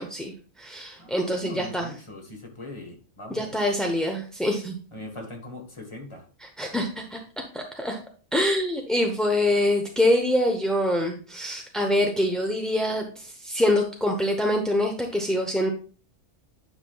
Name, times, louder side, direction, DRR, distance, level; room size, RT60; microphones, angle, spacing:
voice 1, 0.0-1.9 3.3-4.8 6.4-8.0 8.3-15.7, left 1 dB, ahead, 1 dB, 0.5 m, -25 dB
voice 2, 1.0-3.6 4.9-6.3, left 1 dB, 25° left, 2 dB, 1.4 m, -40 dB
9.7 x 5.8 x 2.3 m, 0.39 s
omnidirectional pair, 1.3 m